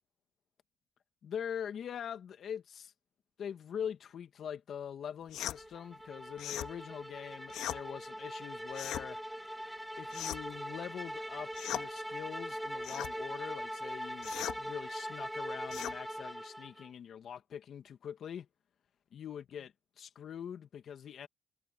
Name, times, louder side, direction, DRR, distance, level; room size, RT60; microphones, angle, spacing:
voice 1, 1.2-2.9 3.4-9.2 10.0-18.5 19.1-19.7 20.0-21.3, left 8 dB, 60° left, 2.3 m, -43 dB
sound 1, 5.3-5.6 6.4-6.7 7.5-7.8 8.7-9.1 10.1-10.6 11.5-11.9 12.8-13.1 14.2-14.6 15.7-16.0, left 12 dB, 85° left, 2.3 m, -39 dB
sound 2, 5.6-16.9, equal, ahead, 3.8 m, -42 dB
cardioid pair, 90°, 0 cm